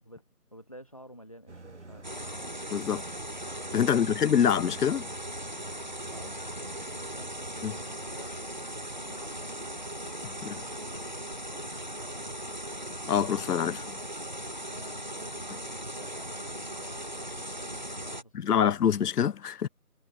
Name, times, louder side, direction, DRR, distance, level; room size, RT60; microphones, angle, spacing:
voice 1, 0.5-2.3 5.7-9.8 10.3-12.4 14.6-18.7, equal, 25° left, 1.1 m, -52 dB
sound 1, 1.5-13.7, right 3 dB, 50° right, 1.8 m, -49 dB
sound 2, 2.0-18.2, right 1 dB, 30° right, 1.0 m, -39 dB
voice 2, 2.7-3.0 3.7-5.1 7.6-7.7 10.2-10.6 13.1-14.0 18.3-19.7, left 8 dB, 85° left, 0.6 m, -26 dB
figure-of-eight pair, 170°, 45 cm